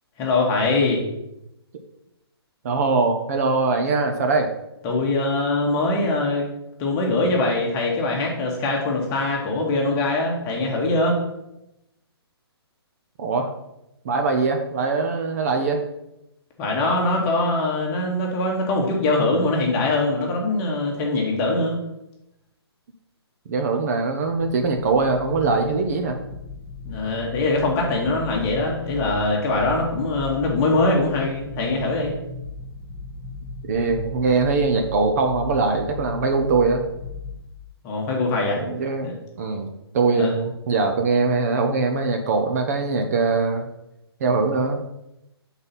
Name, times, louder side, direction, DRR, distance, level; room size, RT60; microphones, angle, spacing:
voice 1, 0.2-1.0 4.8-6.5 6.8-11.2 16.6-21.8 26.8-32.1 37.8-38.6 39.0-39.1 40.2-40.3, left 2 dB, 20° left, -1 dB, 1.2 m, -22 dB
voice 2, 2.6-4.5 13.2-13.5 14.0-15.8 23.5-26.2 33.7-36.8 38.5-39.7 39.9-43.6 44.2-44.8, right 4 dB, 35° right, 5 dB, 0.6 m, -22 dB
sound 1, 24.2-37.4, left 3 dB, ahead, 1.0 m, -37 dB
5.4 x 4.1 x 5.6 m, 0.87 s
hypercardioid pair, 155°, 14 cm